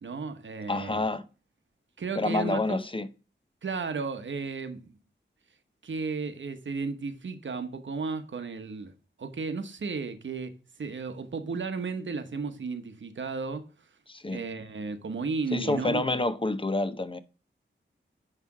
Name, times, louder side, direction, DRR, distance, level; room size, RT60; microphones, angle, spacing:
voice 1, 0.0-1.0 2.0-2.8 3.6-4.9 5.8-8.9 9.2-13.7 14.3-16.0, right 4 dB, 75° right, 1.0 m, -34 dB
voice 2, 0.7-1.2 2.2-3.1 14.1-14.4 15.5-17.2, left 2 dB, 25° left, 0.6 m, -28 dB
9.8 x 3.3 x 4.7 m
wide cardioid pair, 80°, 20 cm